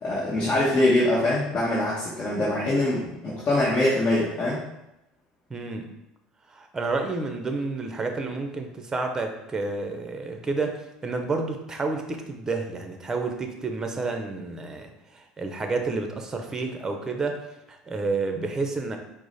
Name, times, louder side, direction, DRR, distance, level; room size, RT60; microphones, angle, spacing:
voice 1, 0.0-4.6, left 1 dB, 40° left, -6 dB, 1.0 m, -23 dB
voice 2, 5.5-5.9 6.5-10.7 11.0-17.4 17.7-19.0, right 3 dB, 20° right, 4 dB, 0.6 m, -30 dB
4.6 x 2.1 x 4.1 m, 0.90 s
supercardioid pair, 100°, 3 cm